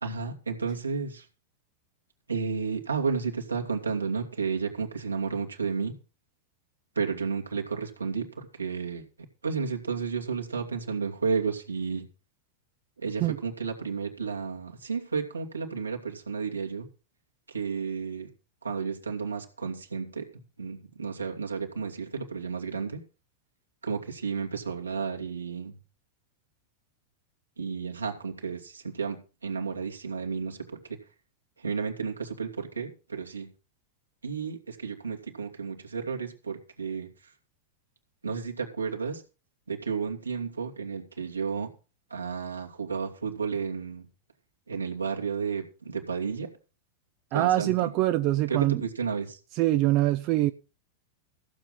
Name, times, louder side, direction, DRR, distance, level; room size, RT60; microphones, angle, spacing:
voice 1, 0.0-1.3 2.3-5.9 7.0-9.0 9.4-12.1 13.0-16.9 17.5-18.3 18.6-20.3 20.6-23.0 23.8-25.7 27.6-31.0 31.6-33.5 34.2-37.3 38.2-39.2 39.7-41.7 42.1-44.1 44.7-46.5 47.3-47.9 48.5-49.4, right 5 dB, 80° right, 2.5 m, -32 dB
voice 2, 47.3-48.8 49.5-50.5, right 15 dB, 40° right, 0.6 m, -24 dB
15.0 x 7.4 x 5.6 m
figure-of-eight pair, 90°, 0 cm